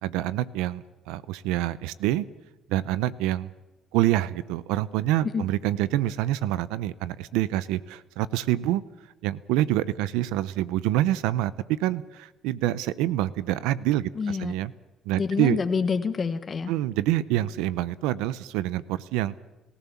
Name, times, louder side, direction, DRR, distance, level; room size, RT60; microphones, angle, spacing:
voice 1, 0.0-2.3 2.7-3.5 3.9-8.8 9.2-14.7 15.1-15.6 16.7-19.4, right 14 dB, 90° right, 18 dB, 0.7 m, -26 dB
voice 2, 14.1-14.6 15.2-16.7, left 5 dB, 40° left, 9 dB, 1.4 m, -27 dB
29.5 x 15.0 x 7.2 m, 1.1 s
supercardioid pair, 80°, 0 cm